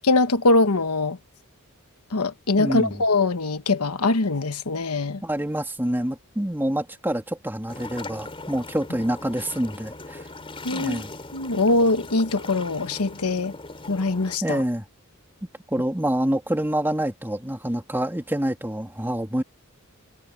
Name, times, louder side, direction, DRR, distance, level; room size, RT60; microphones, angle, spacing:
voice 1, 0.0-1.2 2.1-5.2 10.6-11.0 11.3-13.5 13.9-14.6, left 2 dB, 85° left, 1.2 m, -22 dB
voice 2, 2.6-3.0 5.2-10.2 10.7-11.1 14.4-14.8 15.7-19.4, right 1 dB, 10° right, 2.6 m, -26 dB
sound 1, 7.7-14.4, left 3 dB, 25° left, 3.8 m, -39 dB
head